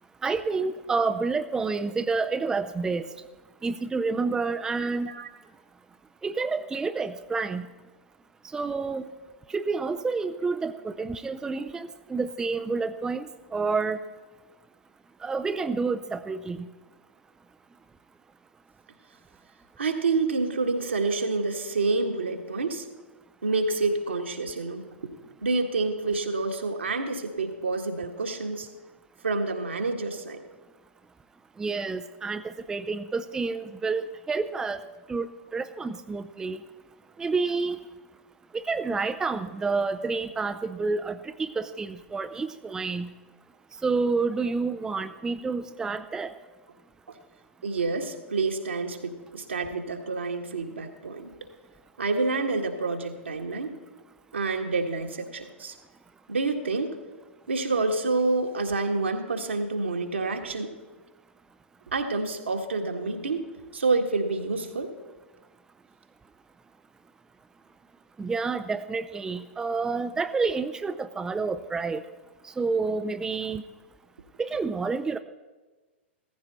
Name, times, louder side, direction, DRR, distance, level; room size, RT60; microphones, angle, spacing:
voice 1, 0.2-3.1 3.6-5.1 6.2-7.7 8.5-9.1 9.5-14.0 15.2-16.7 31.6-34.8 35.1-36.6 37.2-37.8 38.5-43.1 43.8-46.3 68.2-72.0 72.4-73.6 74.4-75.2, right 4 dB, 10° right, 9 dB, 0.5 m, -29 dB
voice 2, 4.8-5.3 19.8-22.9 23.4-25.1 25.4-28.7 29.2-30.4 47.6-51.3 52.0-53.8 54.3-55.8 56.3-57.0 57.5-60.7 61.9-63.4 63.7-64.9, right 3 dB, 70° right, 3 dB, 1.8 m, -28 dB
16.5 x 15.0 x 4.2 m, 1.2 s
figure-of-eight pair, 100°, 6 cm